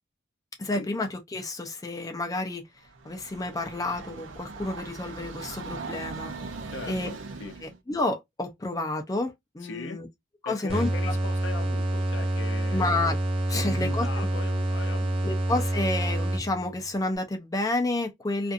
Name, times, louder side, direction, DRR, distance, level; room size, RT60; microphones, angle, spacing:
voice 1, 0.6-2.6 3.0-6.3 6.9-7.1 7.6-10.1 10.4-11.1 12.7-13.2 13.5-14.3 15.2-18.5, left 2 dB, 20° left, 0.5 m, -30 dB
Train, 2.8-7.8, right 3 dB, 85° right, 0.5 m, -39 dB
voice 2, 6.7-7.5 9.6-10.0 10.4-12.9 13.5-15.3, left 4 dB, 70° left, 0.6 m, -39 dB
sound 1, 10.7-16.8, right 1 dB, 30° right, 0.6 m, -27 dB
2.5 x 2.4 x 2.5 m
head